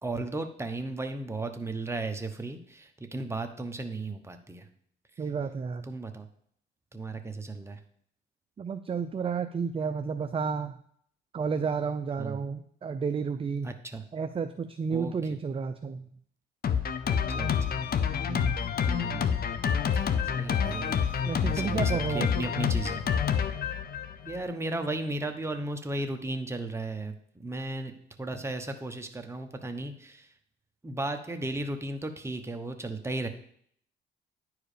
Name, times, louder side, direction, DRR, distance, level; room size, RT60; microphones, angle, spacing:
voice 1, 0.0-4.6 5.9-6.3 6.9-7.8 12.2-12.4 13.6-14.0 14.9-15.1 17.1-17.8 18.9-19.4 19.9-20.0 20.3-23.1 24.2-27.9 28.2-30.3 30.8-33.3, right 2 dB, 15° right, 6 dB, 1.0 m, -35 dB
voice 2, 5.2-5.9 8.6-10.8 11.3-13.7 14.1-16.1 18.3-18.6 21.3-22.3, right 5 dB, 30° right, 9 dB, 0.4 m, -31 dB
Drum kit, 16.6-24.4, left 7 dB, 50° left, 0.7 m, -28 dB
10.0 x 4.8 x 5.0 m, 0.65 s
cardioid pair, 90°, 20 cm